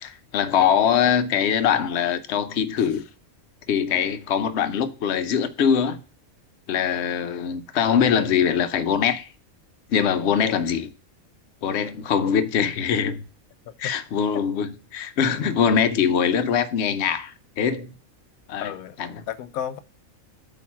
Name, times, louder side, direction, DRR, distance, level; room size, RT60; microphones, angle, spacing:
voice 1, 0.0-3.0 3.7-6.0 6.7-9.3 9.9-10.9 11.6-13.2 13.8-17.9 18.5-18.7 19.0-19.2, left 7 dB, 60° left, 0.9 m, -22 dB
voice 2, 18.6-19.0 19.3-19.8, left 9 dB, 90° left, 1.1 m, -32 dB
8.3 x 3.1 x 5.7 m
omnidirectional pair, 1.5 m